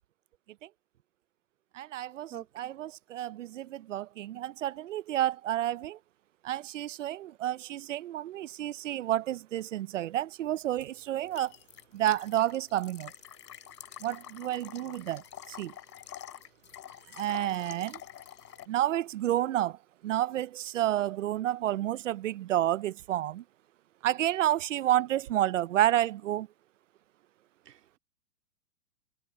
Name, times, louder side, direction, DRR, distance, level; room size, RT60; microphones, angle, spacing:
voice 1, 1.7-6.0 6.4-11.5 11.9-13.1 14.0-15.2 15.5-15.7 17.1-18.0 18.7-19.8 20.0-23.4 24.0-26.5, right 13 dB, 55° right, 0.6 m, -30 dB
voice 2, 2.3-2.7 27.7-28.0, right 11 dB, 90° right, 2.8 m, -45 dB
sound 1, 10.8-18.7, left 11 dB, 85° left, 4.1 m, -47 dB
hypercardioid pair, 175°, 47 cm